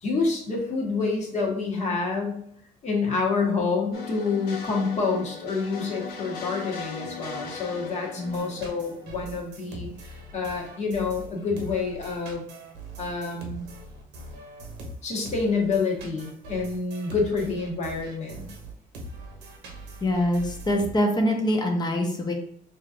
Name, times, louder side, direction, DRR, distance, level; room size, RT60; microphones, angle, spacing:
voice 1, 0.0-2.4 2.8-12.4 13.0-13.7 15.0-18.5, left 4 dB, 45° left, -1 dB, 1.3 m, -28 dB
sound 1, 3.9-9.7, left 4 dB, 70° left, 1.3 m, -38 dB
voice 2, 8.2-8.5 20.0-22.3, equal, 25° left, 2 dB, 0.8 m, -24 dB
sound 2, 8.2-20.9, right 1 dB, 85° right, 1.0 m, -42 dB
4.9 x 2.8 x 2.5 m, 0.66 s
cardioid pair, 110°, 17 cm